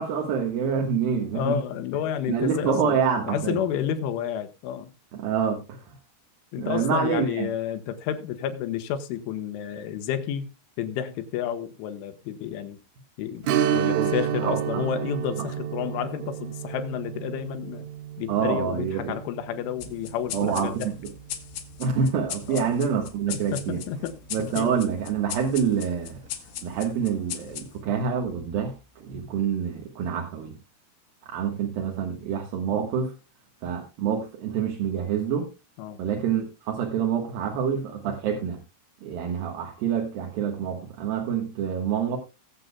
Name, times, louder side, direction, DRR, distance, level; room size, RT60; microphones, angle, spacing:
voice 1, 0.0-1.6 2.3-3.6 5.1-5.8 6.6-7.5 13.9-14.1 14.4-14.8 18.3-19.1 20.3-20.9 21.8-23.8 24.3-26.2 26.6-30.5 31.3-33.1 33.6-35.5 36.0-38.6 39.0-42.2, right 7 dB, 65° right, 1 dB, 2.6 m, -27 dB
voice 2, 1.3-3.0 3.3-4.9 6.5-10.5 10.8-12.8 13.2-17.9 18.2-20.9 22.5-22.8 23.3-24.7 35.8-36.0, left 9 dB, 85° left, 8 dB, 3.5 m, -31 dB
Strum, 13.4-22.6 23.0-23.1 25.6-25.8 26.2-26.3, right 9 dB, 90° right, 3.4 m, -31 dB
sound 1, 19.8-28.7, left 10 dB, 70° left, 2.4 m, -39 dB
20.5 x 7.8 x 2.2 m, 0.26 s
omnidirectional pair, 5.5 m